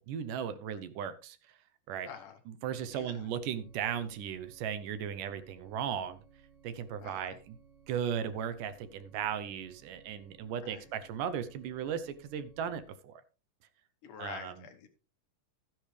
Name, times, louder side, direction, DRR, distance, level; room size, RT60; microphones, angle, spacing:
voice 1, 0.0-1.6 1.9-2.1 2.5-6.2 6.6-7.6 7.9-13.2 14.2-14.5, right 8 dB, 75° right, 12 dB, 2.3 m, -36 dB
voice 2, 2.0-2.4 2.9-3.3 7.0-7.4 10.6-10.9 14.0-14.9, left 7 dB, 70° left, 6 dB, 2.6 m, -47 dB
sound 1, 2.7-12.9, right 7 dB, 35° right, 5.1 m, -61 dB
13.0 x 10.0 x 3.3 m, 0.34 s
omnidirectional pair, 3.9 m